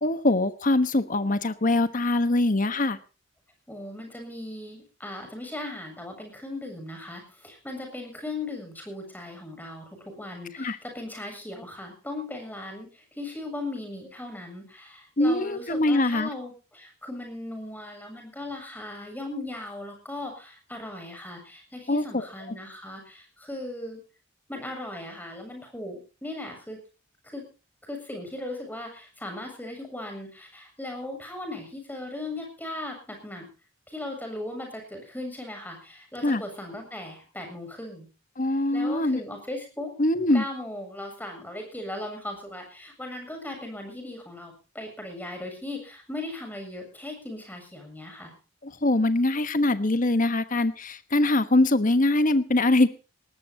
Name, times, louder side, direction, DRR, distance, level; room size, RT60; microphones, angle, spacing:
voice 1, 0.0-3.0 10.6-10.8 15.2-16.3 21.9-22.2 36.2-36.4 38.4-39.2 40.0-40.4 48.6-52.9, left 2 dB, 40° left, 11 dB, 1.2 m, -23 dB
voice 2, 3.7-24.0 24.5-26.8 27.2-27.4 27.8-33.5 33.9-38.1 38.7-39.9 40.3-48.3, left 2 dB, 10° left, 4 dB, 7.3 m, -38 dB
19.5 x 19.5 x 2.9 m, 0.34 s
head